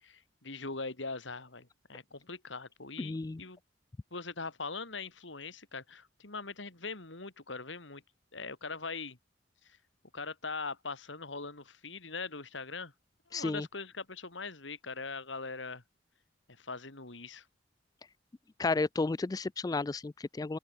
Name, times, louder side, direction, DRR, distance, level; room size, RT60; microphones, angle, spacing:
voice 1, 0.0-3.6 4.1-8.0 8.3-9.2 9.6-9.8 10.1-12.9 13.3-15.8 16.6-17.4, left 4 dB, 80° left, 3.1 m, -41 dB
voice 2, 3.0-3.4 13.3-13.7 18.6-20.6, left 3 dB, 20° left, 0.3 m, -32 dB
open air
head